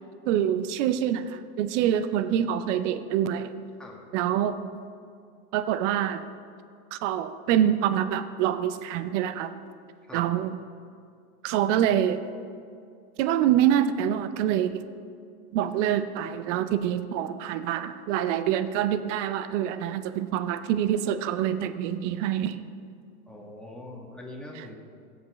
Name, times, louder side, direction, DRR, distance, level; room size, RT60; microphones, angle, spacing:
voice 1, 0.3-3.6 4.1-4.6 5.5-6.2 6.9-9.5 10.1-10.6 11.4-12.2 13.2-14.8 15.5-22.6 24.6-24.7, right 10 dB, 50° right, 12 dB, 0.7 m, -26 dB
voice 2, 23.3-24.8, left 1 dB, ahead, -2 dB, 1.8 m, -42 dB
17.0 x 8.1 x 3.2 m, 2.3 s
hypercardioid pair, 115°, 46 cm